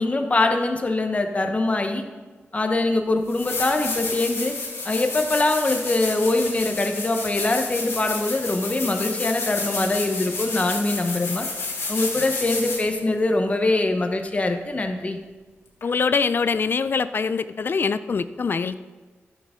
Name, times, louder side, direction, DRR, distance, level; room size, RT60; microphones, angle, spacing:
voice 1, 0.0-2.0 2.5-4.5 4.8-11.5 11.9-15.2, left 2 dB, 30° left, 4 dB, 1.1 m, -23 dB
sound 1, 2.8-2.9 3.3-13.0 15.8-15.9, left 3 dB, 80° left, 2.3 m, -30 dB
voice 2, 15.8-18.8, left 5 dB, 50° left, 14 dB, 0.4 m, -23 dB
14.0 x 7.4 x 3.7 m, 1.3 s
wide cardioid pair, 110°, 4 cm